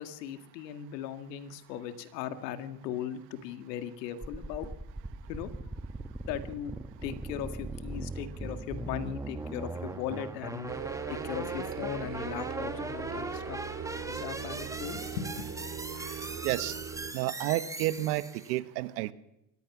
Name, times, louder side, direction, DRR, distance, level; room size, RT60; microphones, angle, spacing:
voice 1, 0.0-4.7 5.3-5.5 6.2-6.7 7.0-10.7 11.1-13.6 14.1-15.5, left 9 dB, 85° left, 9 dB, 2.1 m, -38 dB
sound 1, 4.2-18.6, right 2 dB, 5° right, 1.3 m, -40 dB
sound 2, 10.7-17.1, right 7 dB, 25° right, 2.6 m, -39 dB
voice 2, 17.1-18.2 18.5-19.1, right 17 dB, 75° right, 14 dB, 1.4 m, -30 dB
23.5 x 18.0 x 6.1 m, 0.86 s
supercardioid pair, 105°, 48 cm